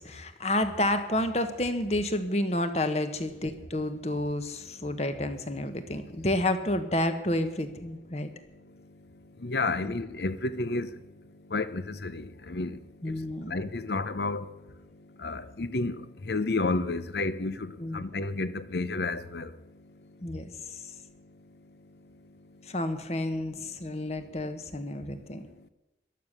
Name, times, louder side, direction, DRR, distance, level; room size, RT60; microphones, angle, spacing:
voice 1, 0.0-8.3 9.7-10.0 13.0-13.5 17.8-18.0 20.2-20.8 22.7-25.4, left 1 dB, 35° left, 1.3 m, -30 dB
voice 2, 9.4-10.9 11.5-12.8 13.4-14.5 15.2-19.5, left 3 dB, 65° left, 0.8 m, -31 dB
15.0 x 11.5 x 6.7 m
head